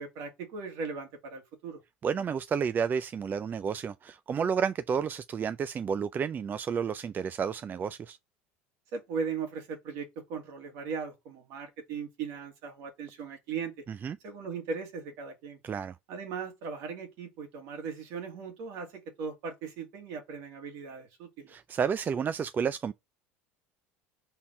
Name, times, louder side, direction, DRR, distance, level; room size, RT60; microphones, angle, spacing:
voice 1, 0.0-1.8 8.9-13.7 14.2-15.6 16.1-21.5, right 5 dB, 65° right, 2.4 m, -38 dB
voice 2, 2.0-8.2 14.0-14.2 15.6-16.0 21.5-22.9, right 6 dB, 30° right, 0.4 m, -31 dB
5.7 x 4.2 x 5.2 m
hypercardioid pair, 80°, 6 cm